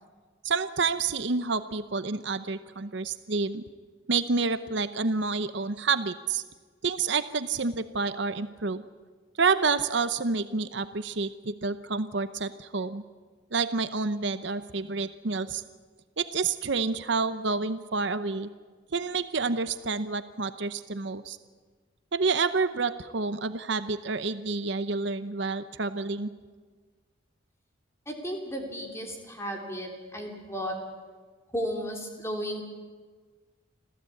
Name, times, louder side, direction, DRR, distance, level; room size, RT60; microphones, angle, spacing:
voice 1, 0.4-3.6 4.1-6.4 6.8-8.8 9.4-13.0 13.5-15.6 16.2-18.5 18.9-21.4 22.1-26.3, right 4 dB, 60° right, 12 dB, 0.8 m, -29 dB
voice 2, 28.1-30.7 31.5-32.6, equal, 15° left, 2 dB, 3.3 m, -34 dB
26.5 x 15.5 x 8.5 m, 1.5 s
head